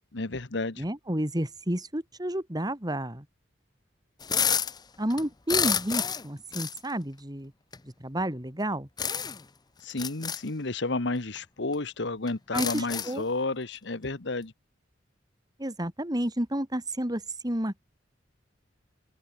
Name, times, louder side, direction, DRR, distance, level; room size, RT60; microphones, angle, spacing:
voice 1, 0.1-0.8 9.8-14.5, left 3 dB, 65° left, 1.3 m, -31 dB
voice 2, 0.8-3.2 5.0-7.5 7.8-8.9 12.5-13.2 15.6-18.0, right 1 dB, 20° right, 3.4 m, -31 dB
sound 1, 4.2-4.8 5.1-6.3 6.5-6.8 7.7-7.8 9.0-9.4 9.9-10.4 11.3-11.4 11.7-11.8 12.3-13.2, left 7 dB, 20° left, 0.7 m, -29 dB
open air
head